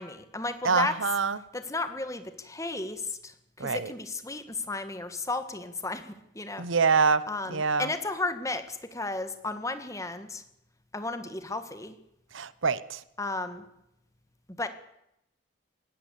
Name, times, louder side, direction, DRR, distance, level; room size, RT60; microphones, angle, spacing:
voice 1, 0.0-0.9 1.5-6.7 7.3-10.4 10.9-12.0 13.2-13.6 14.6-14.7, left 2 dB, 15° left, 9 dB, 1.6 m, -34 dB
voice 2, 0.6-1.4 3.6-3.9 6.6-7.9 12.3-13.0, right 5 dB, 75° right, 17 dB, 0.9 m, -25 dB
19.5 x 17.0 x 8.4 m, 0.80 s
head